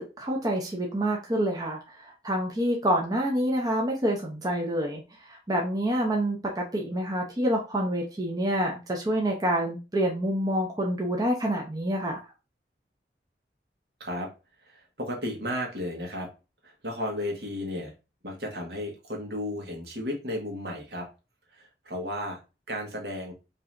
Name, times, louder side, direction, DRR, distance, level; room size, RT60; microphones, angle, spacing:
voice 1, 0.0-5.0 5.3-12.2, equal, 20° right, -1 dB, 0.7 m, -27 dB
voice 2, 14.6-16.3 16.6-17.9 18.2-21.1 21.5-22.4 22.7-23.3, left 1 dB, 65° right, 0 dB, 1.5 m, -34 dB
5.3 x 2.9 x 2.6 m, 0.29 s
head